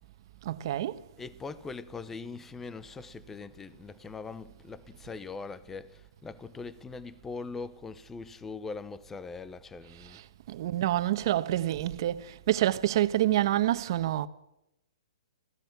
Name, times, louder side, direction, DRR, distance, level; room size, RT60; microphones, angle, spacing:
voice 1, 0.4-1.0 10.1-10.2 10.5-14.3, right 14 dB, 50° right, 1.3 m, -27 dB
voice 2, 1.2-10.2, left 4 dB, 10° left, 0.8 m, -41 dB
26.5 x 16.5 x 6.0 m
hypercardioid pair, 160°, 3 cm